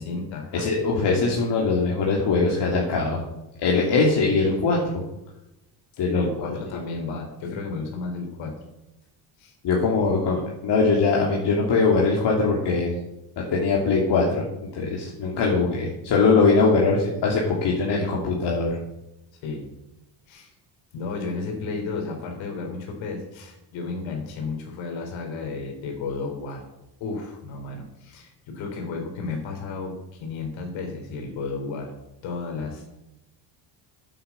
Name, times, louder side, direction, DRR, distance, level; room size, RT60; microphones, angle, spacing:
voice 1, 0.0-0.7 1.0-1.1 6.1-8.6 9.4-9.5 19.4-19.7 20.3-20.5 20.9-26.6 27.0-31.9 32.2-32.9, left 4 dB, 80° left, 2 dB, 3.6 m, -33 dB
voice 2, 0.5-3.2 3.6-5.0 6.0-6.5 9.6-12.9 13.4-18.7, left 4 dB, 60° left, -2 dB, 3.1 m, -22 dB
9.6 x 9.0 x 8.3 m, 0.90 s
cardioid pair, 100°, 45 cm